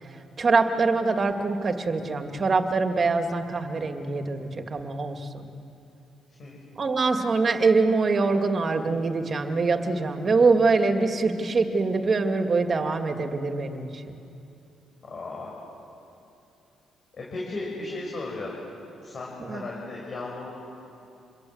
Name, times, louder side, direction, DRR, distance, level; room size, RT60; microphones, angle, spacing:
voice 1, 0.4-5.5 6.8-14.0 19.4-19.6, right 3 dB, 40° right, 5 dB, 2.3 m, -24 dB
voice 2, 15.0-15.5 17.1-18.5 19.0-20.5, left 2 dB, 45° left, -3 dB, 6.3 m, -35 dB
27.5 x 22.5 x 8.0 m, 2.8 s
cardioid pair, 90°, 0 cm